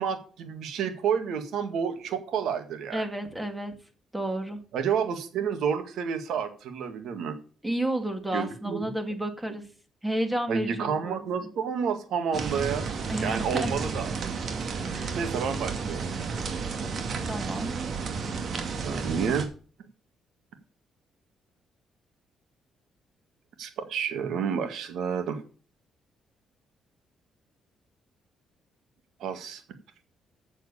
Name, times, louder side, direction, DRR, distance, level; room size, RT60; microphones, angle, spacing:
voice 1, 0.0-3.0 4.7-7.4 8.3-8.9 10.5-14.4 15.1-16.1 18.8-19.5 23.6-25.4 29.2-29.6, right 7 dB, 75° right, 7 dB, 1.9 m, -30 dB
voice 2, 2.9-3.7 4.1-4.6 7.6-9.6 10.0-11.2 13.1-13.7 14.9-15.1 17.3-17.7, right 1 dB, 10° right, 6 dB, 2.4 m, -31 dB
sound 1, 12.3-19.5, right 5 dB, 55° right, 2.3 m, -32 dB
7.6 x 7.3 x 8.4 m, 0.39 s
cardioid pair, 90°, 0 cm